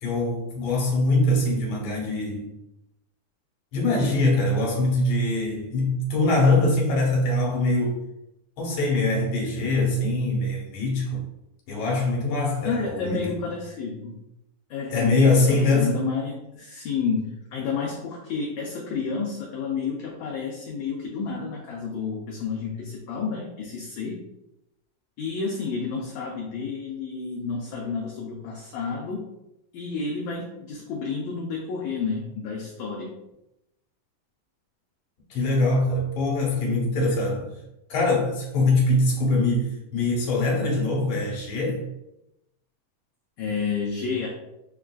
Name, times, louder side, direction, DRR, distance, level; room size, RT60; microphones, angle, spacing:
voice 1, 0.0-2.5 3.7-8.0 8.6-11.2 11.7-13.3 14.9-16.0 35.3-37.5 37.9-41.8, left 2 dB, 65° left, -3 dB, 1.7 m, -23 dB
voice 2, 12.6-14.2 14.7-24.2 25.2-29.3 29.7-33.2 43.4-44.3, left 5 dB, 80° left, -2 dB, 1.6 m, -30 dB
7.0 x 2.4 x 2.2 m, 0.88 s
omnidirectional pair, 3.8 m